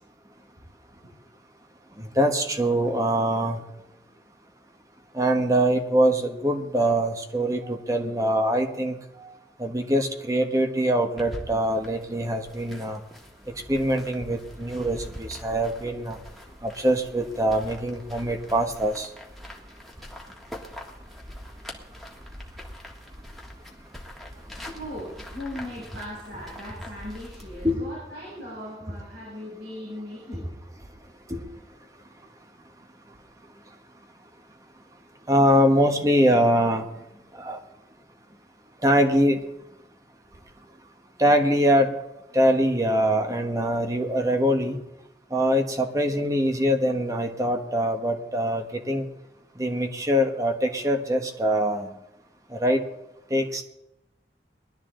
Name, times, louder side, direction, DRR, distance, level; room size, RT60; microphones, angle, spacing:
voice 1, 2.0-3.6 5.1-8.9 9.6-13.0 13.7-16.2 16.6-19.1 27.6-27.8 31.3-31.4 35.3-36.8 37.3-37.6 38.8-39.4 41.2-41.9 42.3-44.8 45.3-49.1 49.6-51.9 52.5-52.8 53.3-53.6, equal, 20° right, 4 dB, 1.2 m, -23 dB
sound 1, 11.2-27.7, equal, ahead, 1.7 m, -43 dB
voice 2, 24.6-30.5, left 1 dB, 80° right, -8 dB, 6.4 m, -39 dB
20.5 x 12.0 x 3.8 m, 0.90 s
head